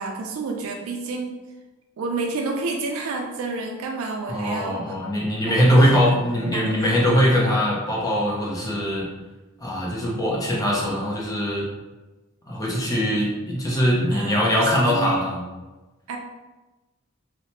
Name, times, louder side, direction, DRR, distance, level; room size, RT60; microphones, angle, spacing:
voice 1, 0.0-1.4 2.0-5.0 5.4-7.2 14.1-15.3 16.1-16.2, right 3 dB, 80° right, 2 dB, 0.4 m, -30 dB
voice 2, 4.3-9.1 9.6-11.7 12.5-15.5, equal, 15° left, -4 dB, 0.5 m, -21 dB
3.1 x 2.0 x 2.8 m, 1.2 s
head